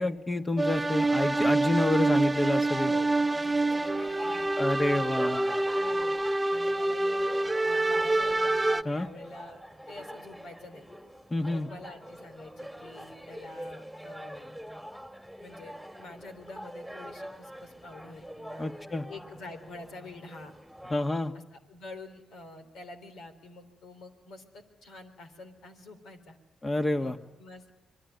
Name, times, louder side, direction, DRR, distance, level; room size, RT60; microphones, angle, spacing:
voice 1, 0.0-2.9 4.6-5.5 8.9-9.1 11.3-11.7 18.6-19.1 20.9-21.3 26.6-27.2, left 2 dB, 30° left, 7 dB, 2.0 m, -28 dB
sound 1, 0.6-8.8, right 2 dB, 20° right, 0.9 m, -26 dB
sound 2, 1.1-20.9, equal, 5° left, 2.6 m, -44 dB
voice 2, 2.8-4.5 4.9-5.1 5.7-6.1 6.5-8.5 8.9-10.9 11.5-14.5 15.4-18.7 19.1-20.5 21.3-26.4 27.0-27.7, left 2 dB, 75° left, 7 dB, 3.7 m, -47 dB
25.5 x 22.0 x 9.5 m, 1.0 s
hypercardioid pair, 50°, 0 cm